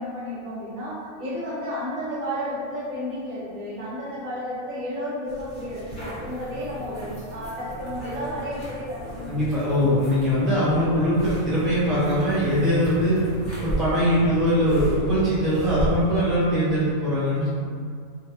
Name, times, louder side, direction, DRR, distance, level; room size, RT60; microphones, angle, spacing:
voice 1, 0.0-9.9, equal, 70° right, -8 dB, 1.2 m, -32 dB
sound 1, 5.3-16.4, right 1 dB, 40° left, 1.0 m, -35 dB
sound 2, 5.9-15.6, left 1 dB, 70° left, 0.9 m, -43 dB
voice 2, 9.3-13.2 13.6-17.5, equal, ahead, -10 dB, 0.3 m, -22 dB
3.2 x 2.2 x 2.7 m, 2.2 s
omnidirectional pair, 1.5 m